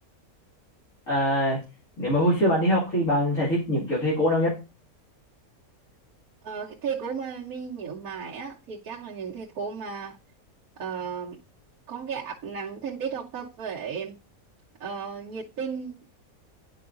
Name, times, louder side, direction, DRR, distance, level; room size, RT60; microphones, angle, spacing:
voice 1, 1.1-1.6 2.0-4.6, equal, 60° left, 2.6 m, -23 dB
voice 2, 6.4-10.2 10.8-11.4 11.9-14.2 14.8-16.0, right 6 dB, 80° right, 1.4 m, -34 dB
10.5 x 4.7 x 2.5 m
omnidirectional pair, 1.5 m